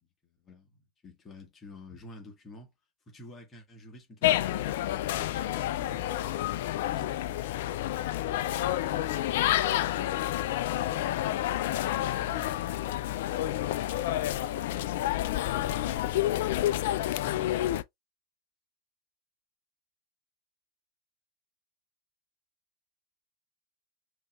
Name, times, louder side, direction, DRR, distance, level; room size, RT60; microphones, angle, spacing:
voice 1, 0.0-2.7 3.1-6.1, left 1 dB, 25° left, 2.0 m, -50 dB
sound 1, 4.2-17.8, left 13 dB, 55° left, 0.4 m, -29 dB
voice 2, 8.3-10.4 10.8-12.3 13.8-16.3, right 7 dB, 30° right, 1.8 m, -56 dB
5.2 x 3.1 x 2.6 m
figure-of-eight pair, 90°, 0 cm